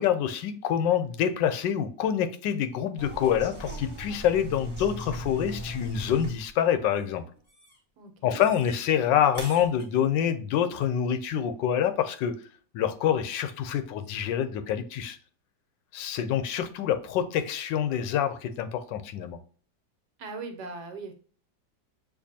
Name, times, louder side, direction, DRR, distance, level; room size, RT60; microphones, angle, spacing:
voice 1, 0.0-7.2 8.2-12.3 12.7-15.2 15.9-19.4, left 9 dB, 85° left, 1.3 m, -26 dB
sound 1, 3.0-6.5 6.7-7.2 7.5-7.8 8.4-8.8 9.3-9.8, right 1 dB, 5° right, 1.4 m, -39 dB
voice 2, 8.0-8.4 20.2-21.1, right 3 dB, 70° right, 1.4 m, -39 dB
6.7 x 2.6 x 2.7 m
omnidirectional pair, 1.9 m